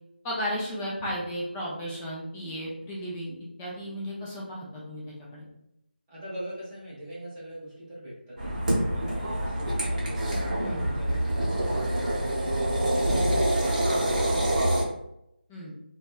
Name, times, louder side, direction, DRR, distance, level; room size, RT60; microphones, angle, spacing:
voice 1, 0.2-5.0 5.3-5.5 10.6-10.8 15.5-15.7, equal, 10° left, -5 dB, 0.4 m, -34 dB
voice 2, 6.1-10.0 10.6-14.9, equal, 15° right, -9 dB, 0.9 m, -42 dB
sound 1, 8.4-14.8, right 1 dB, 45° right, 0.8 m, -26 dB
2.6 x 2.2 x 2.2 m, 0.81 s
figure-of-eight pair, 165°, 6 cm